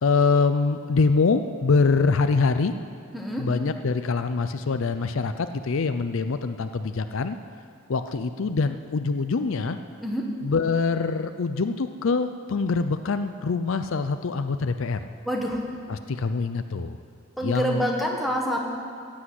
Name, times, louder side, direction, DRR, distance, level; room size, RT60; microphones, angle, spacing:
voice 1, 0.0-2.7 3.4-7.4 7.9-9.8 10.4-15.0 15.9-17.0 17.4-17.8, left 4 dB, 60° left, 10 dB, 0.5 m, -24 dB
voice 2, 3.1-3.4 10.0-10.2 15.2-15.6 17.4-18.6, equal, ahead, -1 dB, 1.5 m, -26 dB
15.5 x 8.5 x 7.8 m, 2.3 s
head